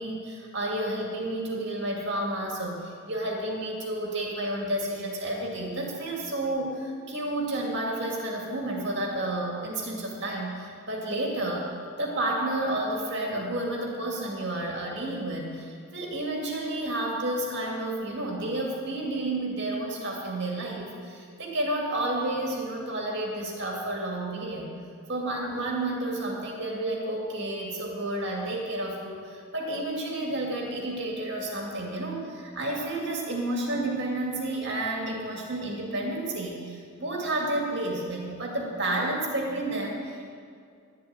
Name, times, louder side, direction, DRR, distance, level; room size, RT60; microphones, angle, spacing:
voice 1, 0.0-11.7 12.0-24.7 25.1-40.3, right 1 dB, 55° right, -2 dB, 2.3 m, -31 dB
11.5 x 7.4 x 8.7 m, 2.3 s
head